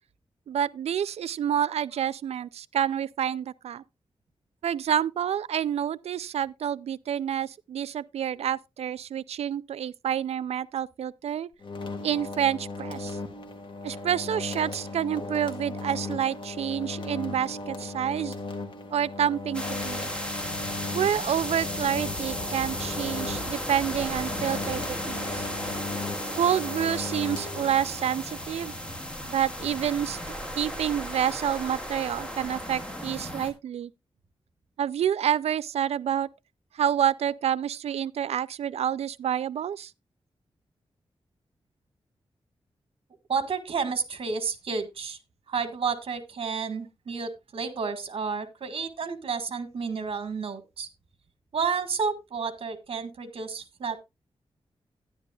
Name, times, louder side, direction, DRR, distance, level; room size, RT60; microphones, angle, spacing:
voice 1, 0.5-3.8 4.6-11.5 12.0-13.2 13.8-18.3 18.9-20.1 20.9-25.4 26.4-28.7 29.2-30.2 30.6-33.9 34.8-36.3 36.8-39.9, right 9 dB, 90° right, 0.4 m, -28 dB
sound 1, 11.6-28.1, left 3 dB, 50° left, 1.8 m, -37 dB
sound 2, 19.5-33.5, equal, 10° left, 1.8 m, -35 dB
voice 2, 43.3-45.2 45.5-50.9 51.5-54.0, right 5 dB, 60° right, 1.6 m, -31 dB
12.5 x 10.0 x 2.4 m
wide cardioid pair, 125°, 10 cm